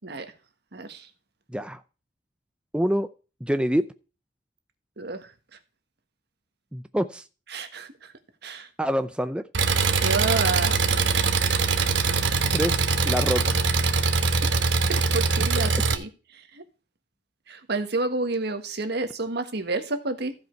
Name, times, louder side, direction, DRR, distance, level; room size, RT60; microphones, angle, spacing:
voice 1, 0.7-1.1 5.0-5.3 7.5-8.1 8.4-8.7 10.0-10.8 14.2-14.4 14.9-16.6 17.5-20.3, right 3 dB, 65° right, 8 dB, 1.5 m, -30 dB
voice 2, 2.7-3.1 3.4-3.9 6.7-7.2 8.8-9.4 12.5-13.6, equal, 5° right, 10 dB, 0.5 m, -26 dB
Engine, 9.5-15.9, right 4 dB, 80° right, 1.1 m, -22 dB
15.0 x 5.3 x 4.5 m, 0.33 s
head